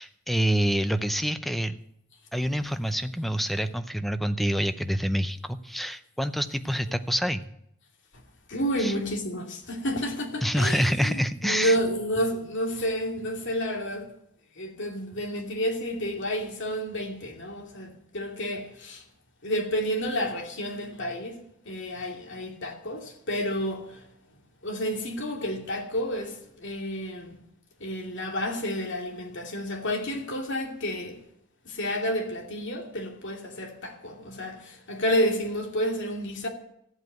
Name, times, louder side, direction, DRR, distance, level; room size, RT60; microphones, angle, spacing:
voice 1, 0.0-1.7 2.3-7.4 8.8-8.9 10.4-11.8, equal, ahead, 0.6 m, -27 dB
voice 2, 8.5-14.1 14.6-19.0 19.4-24.0 24.6-27.4 27.8-31.2 31.6-36.5, equal, 55° left, 2.6 m, -30 dB
14.0 x 8.1 x 9.2 m
head